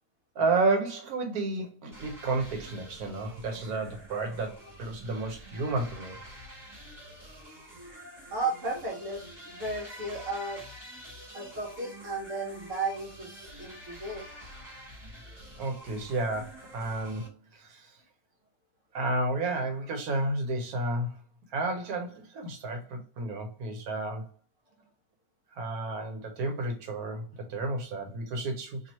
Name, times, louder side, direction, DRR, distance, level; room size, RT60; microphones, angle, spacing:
voice 1, 0.3-6.2 15.6-18.0 18.9-21.2 21.5-24.3 25.5-27.2 27.5-28.8, right 2 dB, 80° right, 4 dB, 1.3 m, -31 dB
sound 1, 1.9-17.3, equal, 30° right, 1.4 m, -47 dB
voice 2, 8.3-10.6 11.3-14.3, right 3 dB, 60° right, -1 dB, 1.2 m, -34 dB
3.0 x 2.9 x 4.1 m, 0.35 s
omnidirectional pair, 1.5 m